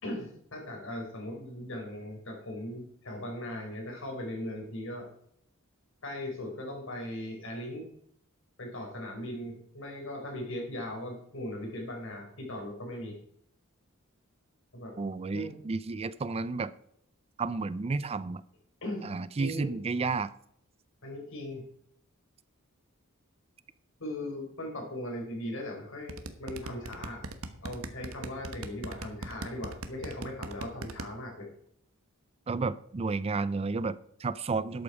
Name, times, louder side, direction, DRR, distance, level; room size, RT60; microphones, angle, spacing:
voice 1, 0.0-5.1 6.0-7.9 8.6-13.2 14.7-15.0 15.3-15.6 18.8-19.1 19.4-19.7 21.0-21.7 24.0-31.5, left 1 dB, 65° left, 1 dB, 4.4 m, -39 dB
voice 2, 15.0-16.7 17.4-18.4 19.0-20.3 32.5-34.8, right 4 dB, 30° right, 17 dB, 0.4 m, -32 dB
sound 1, 26.1-31.1, right 2 dB, 75° right, 1.2 m, -38 dB
12.0 x 8.4 x 4.8 m, 0.69 s
head